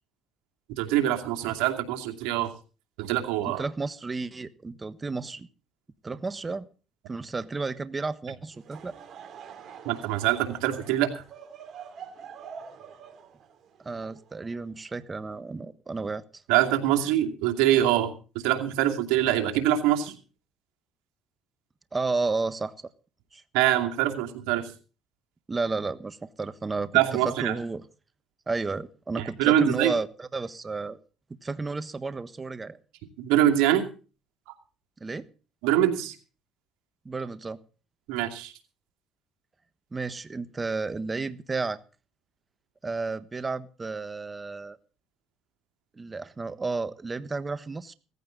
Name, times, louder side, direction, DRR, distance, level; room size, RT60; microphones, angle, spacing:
voice 1, 0.8-2.5 3.0-3.6 9.8-11.2 16.5-20.1 23.5-24.7 26.9-27.5 29.2-29.9 33.2-33.9 34.5-34.6 35.6-36.1 38.1-38.5, right 12 dB, 85° right, 3 dB, 2.6 m, -24 dB
voice 2, 3.4-5.5 6.0-6.7 7.1-9.0 13.8-16.2 21.9-22.7 23.3-23.4 25.5-27.8 28.5-31.0 31.4-32.8 35.0-35.3 37.0-37.6 39.9-41.8 42.8-44.8 46.0-47.9, right 3 dB, 25° right, 12 dB, 1.3 m, -32 dB
Laughter / Crowd, 8.5-14.9, right 7 dB, 55° right, 3.3 m, -46 dB
17.0 x 15.0 x 3.9 m, 0.37 s
supercardioid pair, 80°, 0 cm